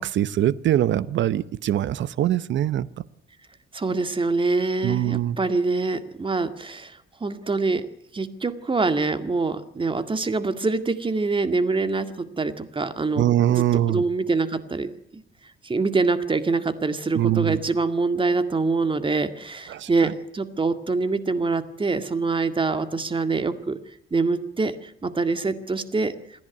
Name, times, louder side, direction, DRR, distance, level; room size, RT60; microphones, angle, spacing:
voice 1, 0.0-2.9 4.8-5.4 13.2-14.0 17.1-17.6 19.7-20.1, right 12 dB, 70° right, 17 dB, 0.9 m, -23 dB
voice 2, 3.7-7.9 8.1-15.2 15.6-23.8 24.1-26.1, right 3 dB, 25° right, 10 dB, 2.0 m, -25 dB
28.0 x 10.5 x 9.5 m, 0.74 s
cardioid pair, 90°, 20 cm